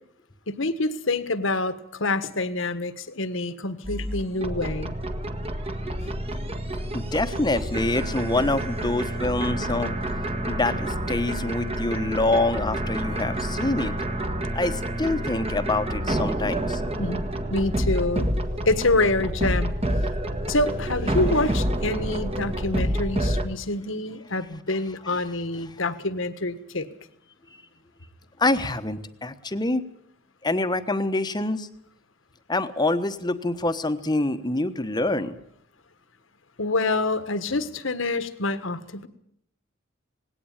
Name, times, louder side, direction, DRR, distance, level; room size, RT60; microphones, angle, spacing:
voice 1, 0.5-4.9 6.0-6.1 17.0-17.2 17.5-19.8 20.1-26.9 36.6-39.1, left 2 dB, 75° left, 12 dB, 1.6 m, -27 dB
sound 1, 3.8-23.5, right 1 dB, 30° right, 1.6 m, -28 dB
voice 2, 6.9-9.9 10.5-13.9 14.5-16.8 28.4-29.8 30.4-31.7 32.5-35.4, left 2 dB, 20° left, 9 dB, 1.1 m, -26 dB
19.5 x 17.5 x 9.0 m, 0.72 s
head